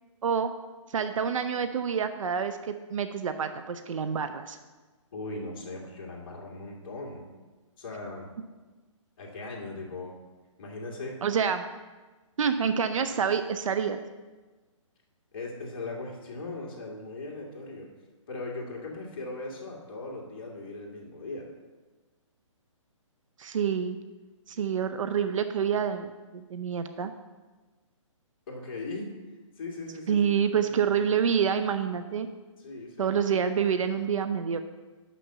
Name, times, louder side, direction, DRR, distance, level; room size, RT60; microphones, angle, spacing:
voice 1, 0.9-4.6 11.2-11.7 12.4-14.0 23.4-24.0 24.5-27.1 30.1-32.3 33.0-34.6, right 7 dB, 75° right, 9 dB, 0.6 m, -27 dB
voice 2, 5.1-7.2 7.8-8.3 9.2-10.1 10.6-11.2 15.3-17.9 18.3-21.5 28.5-29.1 29.6-31.0 32.6-33.2, left 2 dB, 45° left, -2 dB, 2.2 m, -39 dB
6.1 x 5.9 x 6.5 m, 1.3 s
hypercardioid pair, 155°, 17 cm